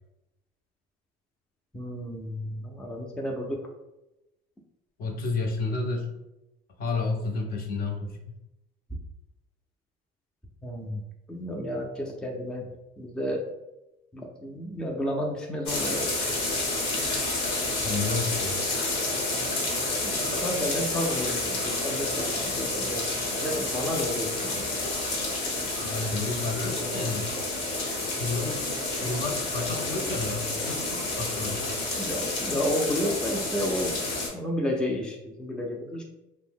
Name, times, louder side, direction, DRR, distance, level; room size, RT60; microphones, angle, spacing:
voice 1, 1.7-3.6 10.6-11.0 11.3-12.7 13.0-13.4 14.1-16.1 20.0-23.1 23.4-24.7 26.8-27.0 32.0-34.0 34.3-36.0, equal, 5° left, 0 dB, 0.4 m, -31 dB
voice 2, 5.0-6.1 6.8-8.2 17.8-18.5 25.8-27.3 28.0-31.8, left 3 dB, 50° left, 2 dB, 0.6 m, -31 dB
sound 1, 15.7-34.3, left 2 dB, 85° left, 1.0 m, -29 dB
2.7 x 2.0 x 3.4 m, 0.94 s
cardioid pair, 105°, 20 cm